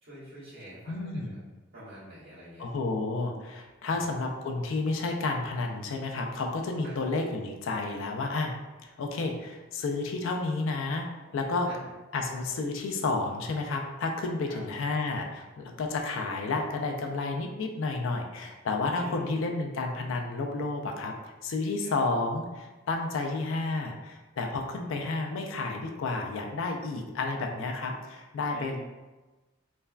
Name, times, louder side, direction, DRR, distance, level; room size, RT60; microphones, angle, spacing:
voice 1, 0.0-1.4 1.7-2.7 3.9-4.1 6.8-7.0 11.7-11.8 14.5-14.6 19.0-19.3 21.8-21.9 24.8-25.0 28.5-28.8, equal, 55° right, -10 dB, 1.4 m, -46 dB
voice 2, 0.9-1.4 2.6-8.5 8.8-11.1 11.3-11.7 12.1-21.2 21.4-28.8, left 3 dB, 65° left, 3 dB, 0.4 m, -31 dB
3.2 x 2.2 x 2.3 m, 1.2 s
head